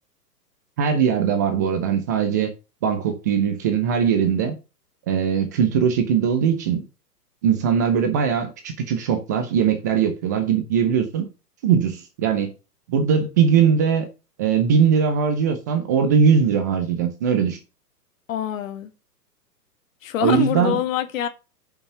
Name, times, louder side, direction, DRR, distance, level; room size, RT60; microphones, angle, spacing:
voice 1, 0.8-2.5 2.8-4.6 5.1-6.8 7.4-11.3 11.6-12.5 12.9-14.1 14.4-17.6 20.2-20.8, right 7 dB, 15° right, 0.4 m, -20 dB
voice 2, 18.3-18.9 20.0-21.3, left 11 dB, 55° left, 1.7 m, -25 dB
6.9 x 5.7 x 6.7 m
hypercardioid pair, 120°, 48 cm